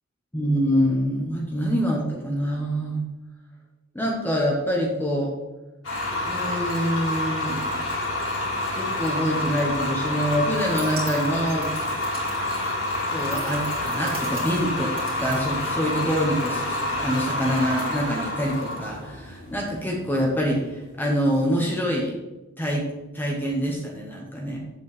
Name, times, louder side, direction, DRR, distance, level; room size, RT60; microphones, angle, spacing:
voice 1, 0.3-3.0 3.9-5.3 6.2-7.8 8.8-11.7 13.1-14.9 15.2-22.1 22.6-22.9 23.1-24.6, equal, 10° left, -1 dB, 1.1 m, -25 dB
sound 1, 5.8-20.8, left 1 dB, 75° left, 2.8 m, -28 dB
sound 2, 10.5-16.2, right 3 dB, 30° right, 2.4 m, -43 dB
8.0 x 7.0 x 3.3 m, 1.1 s
head